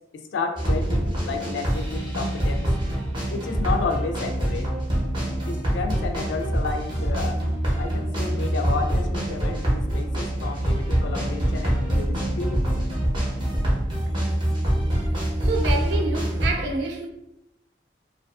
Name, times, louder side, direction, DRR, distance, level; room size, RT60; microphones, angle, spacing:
voice 1, 0.1-2.7 3.3-4.7 5.5-7.4 7.8-12.6, left 4 dB, 80° left, 0.4 m, -31 dB
sound 1, 0.5-16.5, right 1 dB, 25° right, 0.7 m, -25 dB
voice 2, 15.4-17.1, right 3 dB, 70° right, 0.3 m, -27 dB
2.4 x 2.4 x 2.3 m
head